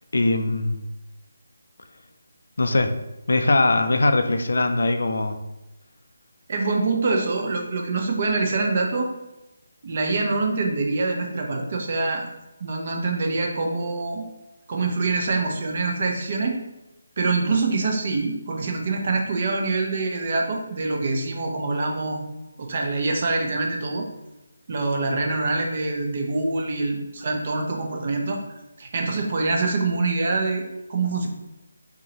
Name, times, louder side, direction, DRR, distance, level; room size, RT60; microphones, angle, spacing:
voice 1, 0.1-0.8 2.6-2.9 3.3-5.4, left 2 dB, 60° left, 7 dB, 0.4 m, -21 dB
voice 2, 6.5-9.1 9.8-12.2 12.6-14.2 14.7-16.6 17.2-22.2 22.6-24.0 24.7-28.4 28.8-30.6 30.9-31.3, right 3 dB, 40° right, 2 dB, 0.7 m, -25 dB
3.8 x 3.8 x 2.9 m, 0.99 s
figure-of-eight pair, 150°, 0 cm